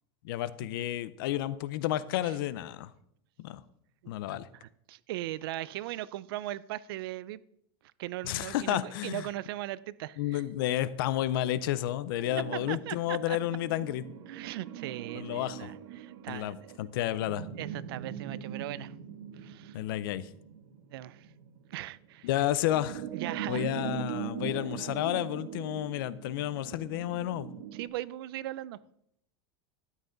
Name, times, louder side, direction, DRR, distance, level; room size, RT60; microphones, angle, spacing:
voice 1, 0.2-2.9 3.4-3.6 4.1-4.5 8.2-9.3 10.2-14.0 15.1-15.7 16.3-17.5 19.7-20.3 22.2-23.0 23.5-27.5, left 13 dB, 55° left, 17 dB, 0.6 m, -31 dB
voice 2, 4.9-7.4 8.0-10.4 12.7-13.4 14.3-16.8 17.6-18.9 19.3-19.8 20.9-21.3 21.7-22.3 23.1-23.7 27.7-28.8, right 15 dB, 60° right, 20 dB, 0.4 m, -39 dB
sound 1, 12.2-27.9, right 10 dB, 80° right, 1.2 m, -41 dB
12.5 x 9.3 x 3.9 m, 0.75 s
supercardioid pair, 180°, 14 cm